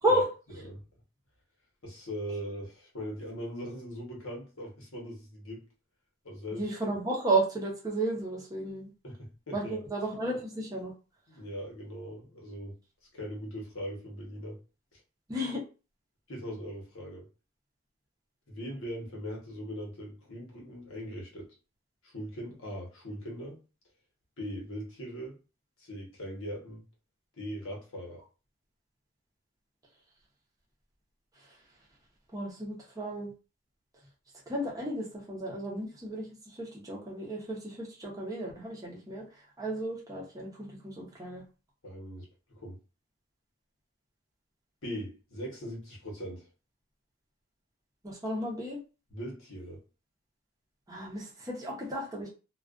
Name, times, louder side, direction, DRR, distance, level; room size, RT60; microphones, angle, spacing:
voice 1, 1.8-5.6 6.2-6.6 9.0-9.8 11.3-12.8 13.1-14.6 14.9-15.0 16.3-17.2 18.5-21.5 22.0-23.6 24.4-25.4 25.8-26.8 27.4-28.2 41.8-42.3 42.5-42.8 44.8-46.5 49.1-49.8, equal, 75° left, 1.0 m, -40 dB
voice 2, 6.5-8.9 9.5-10.9 15.3-15.6 32.3-33.3 34.5-36.3 36.5-39.2 39.6-41.4 48.0-48.8 50.9-52.3, right 1 dB, 15° right, 0.7 m, -33 dB
2.4 x 2.3 x 2.4 m
head